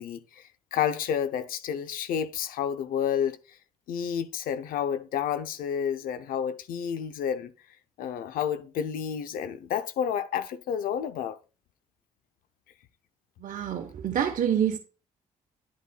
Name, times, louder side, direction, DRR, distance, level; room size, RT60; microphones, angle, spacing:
voice 1, 0.0-3.6 3.9-7.5 8.0-11.4, left 8 dB, 80° left, 0.6 m, -30 dB
voice 2, 13.4-14.8, right 9 dB, 65° right, 0.9 m, -27 dB
9.6 x 8.2 x 2.2 m
cardioid pair, 75°, 14 cm